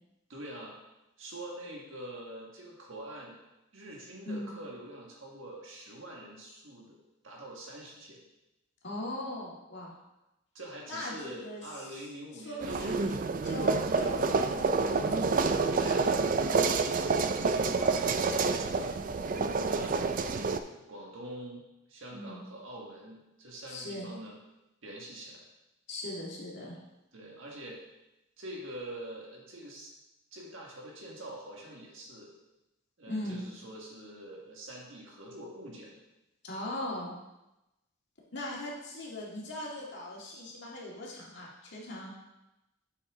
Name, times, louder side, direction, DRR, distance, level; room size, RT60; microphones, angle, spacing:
voice 1, 0.3-0.8 1.2-3.4 3.7-8.2 10.5-13.2 15.8-16.2 16.7-19.0 19.6-21.6 21.9-24.4 24.8-25.5 27.1-27.8 28.4-29.9 30.3-32.3 33.0-36.0, right 1 dB, 65° right, -1 dB, 1.7 m, -45 dB
voice 2, 8.8-9.9 10.9-12.0 12.3-13.2 13.4-15.2 19.6-19.9 22.1-22.4 23.7-24.1 25.9-26.8 33.1-33.4 36.4-37.2 38.3-42.1, left 1 dB, 55° left, -4 dB, 2.0 m, -39 dB
sound 1, 12.6-20.6, right 4 dB, 40° right, 0.3 m, -28 dB
7.6 x 6.5 x 3.7 m, 0.95 s
head